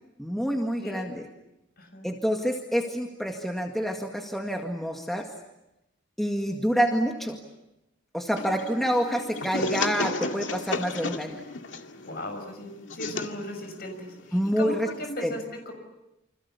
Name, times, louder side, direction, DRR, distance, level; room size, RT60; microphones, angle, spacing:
voice 1, 0.2-1.2 2.0-5.3 6.2-7.4 8.1-11.4 14.3-14.9 15.2-15.3, equal, ahead, 1 dB, 2.0 m, -27 dB
sound 1, 8.4-15.0, left 3 dB, 80° left, 2.1 m, -34 dB
voice 2, 11.9-15.7, left 1 dB, 55° left, 5 dB, 6.5 m, -37 dB
29.0 x 26.5 x 7.1 m, 0.93 s
head